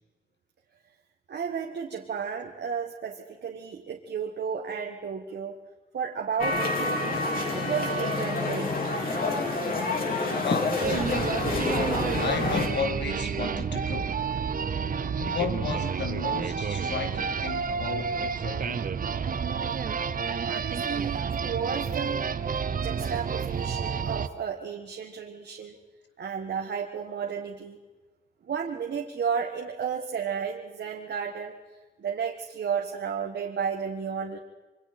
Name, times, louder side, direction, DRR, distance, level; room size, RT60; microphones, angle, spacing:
voice 1, 1.3-5.6 5.9-7.2 7.5-8.8 20.5-22.3 22.8-25.8 26.2-27.8 28.4-31.5 32.0-34.4, right 6 dB, 75° right, 1.7 m, -33 dB
sound 1, 6.4-12.7, left 2 dB, 55° left, 4.3 m, -28 dB
voice 2, 10.3-11.4 12.2-14.2 15.2-18.9, left 5 dB, 80° left, 2.1 m, -33 dB
sound 2, 10.8-24.3, right 6 dB, 50° right, 0.8 m, -30 dB
27.5 x 24.5 x 4.4 m
wide cardioid pair, 160°, 18 cm